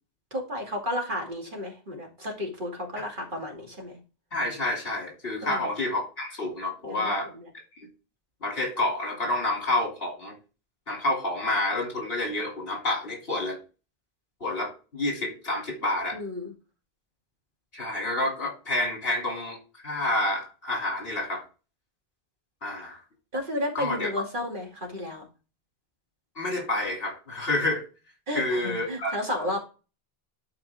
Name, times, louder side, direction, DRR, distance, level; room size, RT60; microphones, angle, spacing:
voice 1, 0.3-4.0 5.4-5.6 6.8-7.5 16.1-16.5 23.3-25.2 28.3-29.6, left 1 dB, 55° right, 0 dB, 2.6 m, -32 dB
voice 2, 4.3-7.3 7.8-7.9 8.4-10.3 10.9-13.6 14.4-16.2 17.7-21.4 22.6-23.0 23.7-24.1 26.4-27.8 28.3-29.5, left 2 dB, 65° left, 0 dB, 3.2 m, -29 dB
11.0 x 4.8 x 3.6 m, 0.32 s
omnidirectional pair, 1.0 m